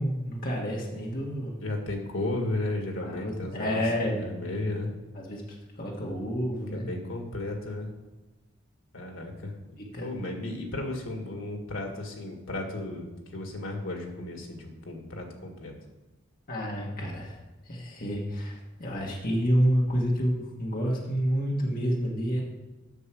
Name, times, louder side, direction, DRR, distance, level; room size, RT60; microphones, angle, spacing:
voice 1, 0.0-1.5 3.0-4.3 5.1-5.4 5.8-6.9 9.9-10.1 16.5-17.4 17.7-22.4, equal, 45° left, -2 dB, 1.6 m, -29 dB
voice 2, 1.6-4.9 6.7-7.9 8.9-9.6 10.0-15.7, left 2 dB, 80° left, 3 dB, 1.9 m, -34 dB
8.1 x 6.4 x 6.1 m, 1.1 s
head